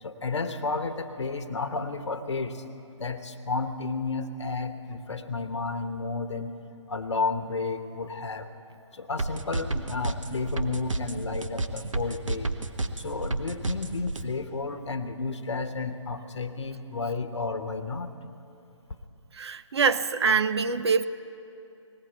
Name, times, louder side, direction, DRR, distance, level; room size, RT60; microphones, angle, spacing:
voice 1, 0.0-2.6 3.0-6.6 6.9-8.5 8.9-12.5 13.0-18.1, left 3 dB, 65° left, 9 dB, 1.0 m, -32 dB
sound 1, 9.2-14.2, right 2 dB, 80° right, 1.0 m, -30 dB
voice 2, 19.3-21.0, right 5 dB, 55° right, 12 dB, 0.5 m, -24 dB
20.0 x 16.0 x 4.5 m, 2.8 s
figure-of-eight pair, 140°, 16 cm